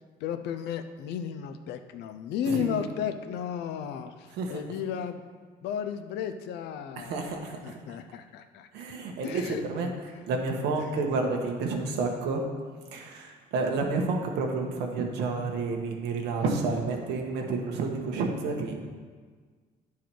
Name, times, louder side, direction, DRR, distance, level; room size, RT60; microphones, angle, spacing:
voice 1, 0.2-5.2 5.6-8.7 9.2-9.9 10.8-11.1, left 8 dB, 80° left, 9 dB, 0.6 m, -34 dB
voice 2, 2.5-2.9 4.4-4.6 7.0-7.6 8.7-9.9 10.3-12.4 12.9-18.7, right 3 dB, 85° right, 2 dB, 1.2 m, -30 dB
10.5 x 4.8 x 4.5 m, 1.5 s
cardioid pair, 110°, 17 cm